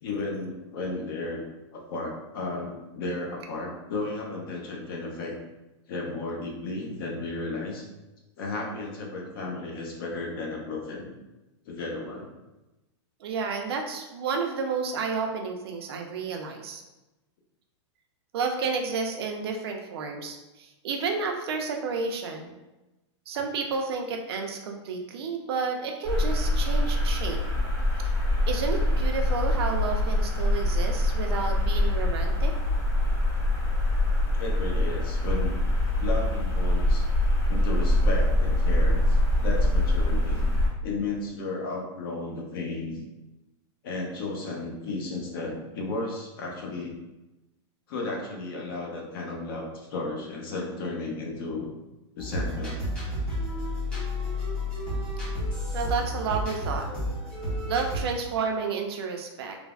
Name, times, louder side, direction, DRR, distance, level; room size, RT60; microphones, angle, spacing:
voice 1, 0.0-1.4 1.7-5.3 5.9-7.9 8.4-11.1 11.7-12.3 34.4-35.6 36.0-37.0 37.5-39.2 39.4-40.5 40.8-43.0 43.8-47.0 47.9-51.7 52.2-52.9 55.7-55.8, left 2 dB, 50° left, 0 dB, 0.6 m, -34 dB
voice 2, 13.2-16.8 18.3-22.6 23.3-27.4 28.5-32.5 55.7-56.9 57.7-59.6, right 5 dB, 55° right, 3 dB, 0.4 m, -31 dB
sound 1, 26.0-40.7, left 1 dB, 80° left, 1.4 m, -24 dB
sound 2, 52.2-58.0, left 1 dB, 5° left, 0.5 m, -31 dB
3.2 x 2.0 x 2.3 m, 1.0 s
supercardioid pair, 170°, 15 cm